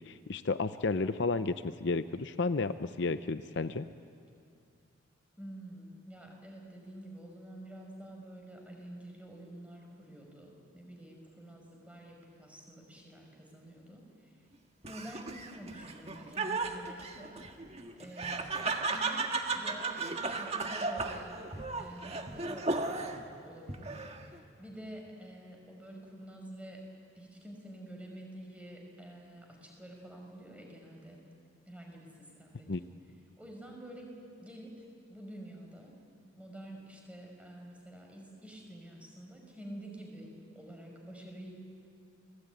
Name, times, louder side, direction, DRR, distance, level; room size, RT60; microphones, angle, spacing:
voice 1, 0.0-3.8 32.7-32.8, left 3 dB, 60° left, 11 dB, 0.6 m, -32 dB
voice 2, 5.4-14.4 14.8-17.4 18.0-21.4 21.8-23.1 23.4-26.8 27.1-31.2 31.7-32.1 32.4-32.9 33.4-35.9 36.4-41.5, right 1 dB, 5° right, 1 dB, 5.3 m, -48 dB
Laughter, 14.8-23.3 23.7-24.4, right 3 dB, 30° right, 1.6 m, -35 dB
29.5 x 19.5 x 9.4 m, 2.4 s
head